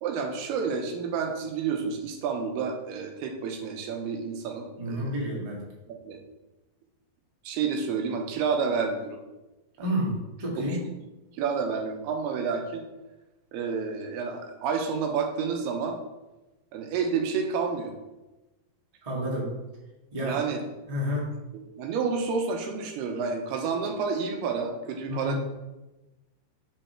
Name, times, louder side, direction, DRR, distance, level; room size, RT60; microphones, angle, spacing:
voice 1, 0.0-5.2 6.0-6.2 7.4-9.2 11.3-12.9 13.5-16.0 16.7-17.9 20.2-20.6 21.5-25.4, right 5 dB, 90° right, 3 dB, 3.0 m, -29 dB
voice 2, 4.8-5.6 9.8-10.9 19.0-19.5 20.1-20.4 20.9-21.3 25.1-25.4, equal, 20° right, -4 dB, 0.9 m, -30 dB
7.5 x 5.7 x 4.4 m, 1.1 s
omnidirectional pair, 4.4 m